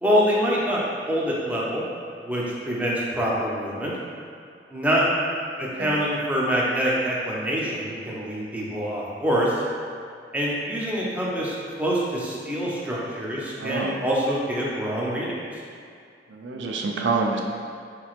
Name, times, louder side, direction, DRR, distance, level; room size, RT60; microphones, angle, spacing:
voice 1, 0.0-1.8 2.2-3.9 4.7-5.0 5.6-9.6 10.3-15.4, equal, 10° right, -5 dB, 0.6 m, -25 dB
voice 2, 13.6-13.9 16.3-17.4, right 4 dB, 90° right, 1 dB, 0.4 m, -27 dB
4.3 x 3.0 x 2.4 m, 2.3 s
head